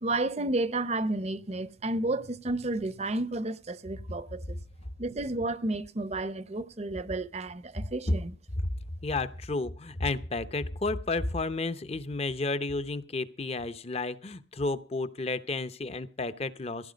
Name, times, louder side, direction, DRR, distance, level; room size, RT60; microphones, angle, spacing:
voice 1, 0.0-4.6 5.0-8.3, right 2 dB, 35° right, 0.7 m, -31 dB
voice 2, 9.0-16.9, left 3 dB, 30° left, 0.7 m, -32 dB
16.0 x 10.5 x 5.1 m
head